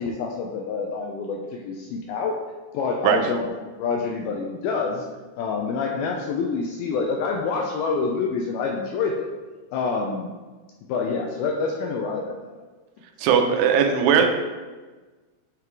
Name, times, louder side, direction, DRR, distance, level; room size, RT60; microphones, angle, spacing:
voice 1, 0.0-2.4 2.7-3.5 3.8-5.1 5.3-9.3 9.7-10.3 10.9-12.5, left 4 dB, 80° left, 1 dB, 2.2 m, -27 dB
voice 2, 13.2-14.3, right 7 dB, 85° right, 4 dB, 2.7 m, -18 dB
8.7 x 3.8 x 4.6 m, 1.3 s
omnidirectional pair, 4.8 m